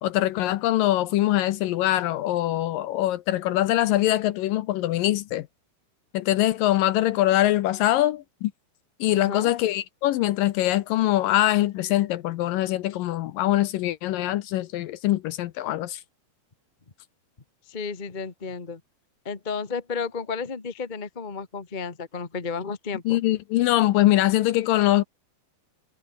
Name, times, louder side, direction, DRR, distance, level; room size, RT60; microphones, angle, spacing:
voice 1, 0.0-5.5 6.1-8.5 9.0-16.0 23.1-25.0, left 14 dB, 75° left, 2.3 m, -23 dB
voice 2, 9.1-9.5 17.7-18.8 19.2-23.2, left 5 dB, 35° left, 0.7 m, -32 dB
omnidirectional pair, 4.5 m